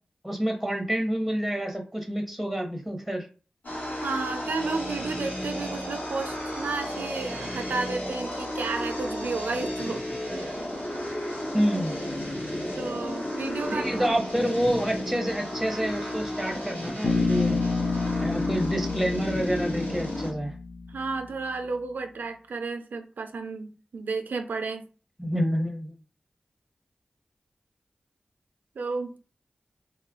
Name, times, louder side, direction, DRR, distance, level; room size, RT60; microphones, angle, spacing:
voice 1, 0.2-3.3 11.5-11.9 13.7-17.6 18.2-20.5 25.2-25.9, equal, ahead, 3 dB, 0.9 m, -28 dB
sound 1, 3.6-20.3, left 1 dB, 90° left, 1.5 m, -33 dB
voice 2, 4.0-10.0 10.3-10.6 12.8-14.2 14.4-14.5 20.9-24.8 28.8-29.1, right 3 dB, 85° right, 7 dB, 0.4 m, -32 dB
Bass guitar, 17.0-21.1, left 3 dB, 65° left, 0.7 m, -29 dB
2.9 x 2.4 x 3.7 m, 0.36 s
cardioid pair, 55°, 3 cm